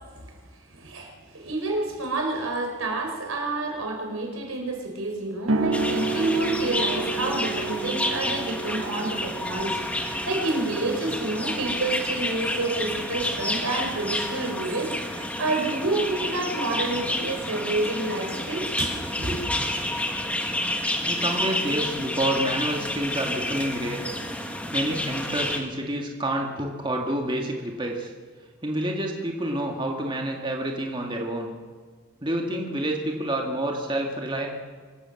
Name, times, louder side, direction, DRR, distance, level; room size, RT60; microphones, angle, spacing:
voice 1, 0.7-19.7, right 2 dB, 90° right, 2 dB, 4.9 m, -29 dB
sound 1, 5.5-12.6, right 3 dB, 70° right, 1.4 m, -32 dB
sound 2, 5.7-25.6, left 1 dB, 5° left, 1.8 m, -30 dB
voice 2, 21.0-24.0 24.7-28.1 28.6-31.5 32.2-34.5, right 1 dB, 20° right, 1 dB, 2.0 m, -28 dB
25.5 x 13.0 x 7.8 m, 1.5 s
head